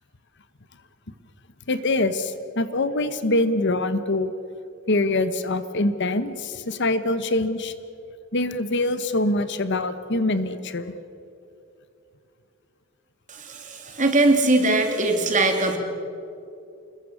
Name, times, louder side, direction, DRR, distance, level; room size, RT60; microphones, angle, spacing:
voice 1, 1.7-4.3 4.9-7.7 8.3-10.9, left 2 dB, 60° left, 12 dB, 1.2 m, -24 dB
voice 2, 13.3-15.8, right 2 dB, 40° right, 4 dB, 3.0 m, -21 dB
28.0 x 21.5 x 6.4 m, 2.7 s
head